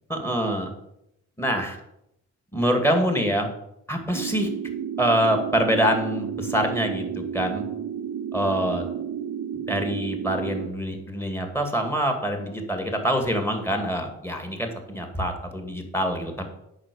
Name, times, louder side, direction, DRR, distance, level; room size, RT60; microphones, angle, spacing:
voice 1, 0.1-0.7 1.4-1.8 2.5-3.5 3.9-4.5 5.0-7.6 8.3-8.8 9.7-16.4, equal, 10° left, 4 dB, 2.3 m, -25 dB
sound 1, 4.1-10.7, right 8 dB, 70° right, 0.6 m, -32 dB
8.7 x 5.8 x 7.0 m, 0.81 s
cardioid pair, 90°, 30 cm